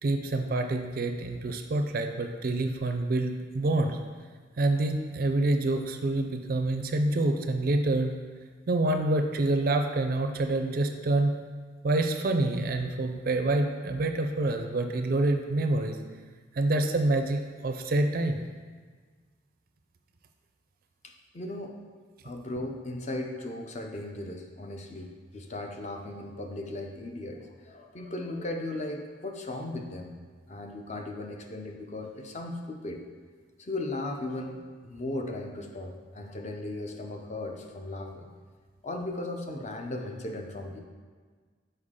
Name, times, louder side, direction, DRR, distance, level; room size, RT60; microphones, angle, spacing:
voice 1, 0.0-4.0 4.6-8.1 8.7-11.3 11.8-16.0 16.5-18.4, right 2 dB, 45° right, 5 dB, 0.4 m, -27 dB
voice 2, 21.0-21.7 22.2-30.1 30.5-33.0 33.6-38.3 38.8-40.8, left 2 dB, 35° left, 3 dB, 0.5 m, -37 dB
6.5 x 4.4 x 3.6 m, 1.5 s
head